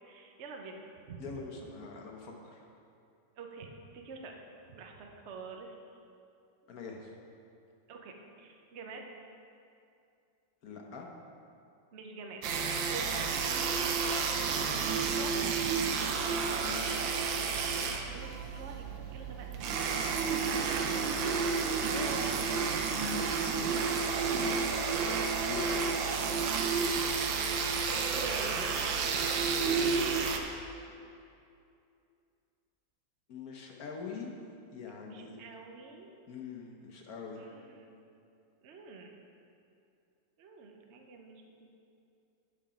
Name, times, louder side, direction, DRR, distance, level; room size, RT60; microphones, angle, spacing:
voice 1, 0.0-0.8 1.1-1.2 3.4-4.4 4.7-5.7 7.9-9.0 11.9-12.6 12.9-14.0 14.4-15.7 17.8-20.2 20.9-21.3 21.8-22.5 26.8-30.0 35.1-36.1 37.4-37.9 38.6-39.1 40.4-41.4, right 4 dB, 60° right, 2 dB, 0.7 m, -46 dB
voice 2, 1.2-2.6 6.7-7.2 10.6-11.1 16.6-17.1 24.4-26.3 33.3-34.3 34.7-35.4 36.3-37.4, left 5 dB, 60° left, 1 dB, 1.1 m, -44 dB
sound 1, 12.4-30.4, right 5 dB, 75° right, 1.4 m, -31 dB
11.5 x 5.0 x 5.0 m, 2.6 s
omnidirectional pair, 2.1 m